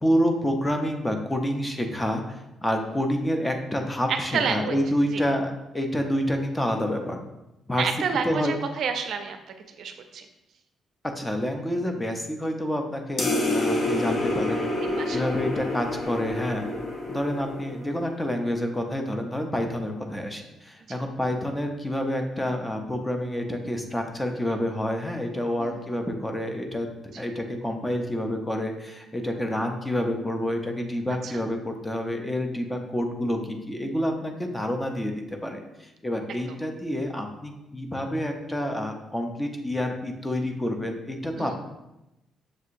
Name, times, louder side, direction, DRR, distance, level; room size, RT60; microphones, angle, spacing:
voice 1, 0.0-7.2 7.7-7.9 8.2-8.5 11.0-14.6 15.1-16.7 17.1-26.9 27.2-41.5, equal, 10° left, 4 dB, 0.5 m, -28 dB
voice 2, 4.1-4.8 5.1-5.2 7.8-9.4 9.7-10.2 14.8-15.2 17.1-17.2 20.9-21.0 25.6-25.8 27.1-27.3 31.2-31.3 41.4-41.5, right 6 dB, 65° right, 6 dB, 0.4 m, -29 dB
sound 1, 13.2-18.1, left 2 dB, 50° left, 0.7 m, -28 dB
6.4 x 2.7 x 2.5 m, 0.92 s
cardioid pair, 110°, 0 cm